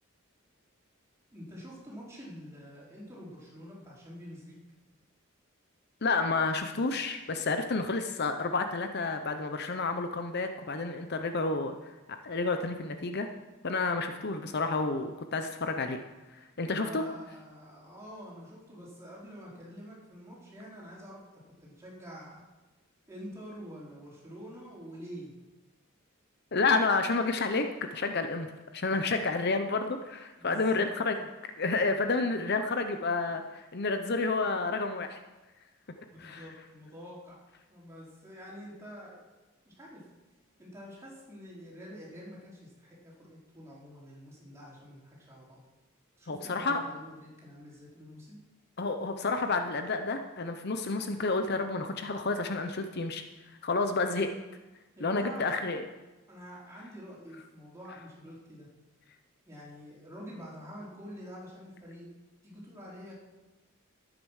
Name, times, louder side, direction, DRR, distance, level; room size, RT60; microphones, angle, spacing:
voice 1, 1.3-4.6 16.5-21.2 21.5-22.4 23.1-25.3 30.4-30.8 36.1-37.4 37.7-39.2 39.6-40.0 40.6-45.6 46.2-48.4 55.0-55.6 56.3-58.7 59.5-62.1 62.4-63.1, equal, 15° right, -6 dB, 4.3 m, -47 dB
voice 2, 6.0-11.8 12.2-13.3 13.6-16.0 16.6-17.0 26.5-28.5 28.7-31.2 31.6-35.2 36.2-36.4 46.3-46.8 48.8-53.2 53.6-54.3 55.0-55.8, left 3 dB, 50° left, 7 dB, 0.8 m, -30 dB
12.5 x 8.9 x 6.5 m, 1.1 s
head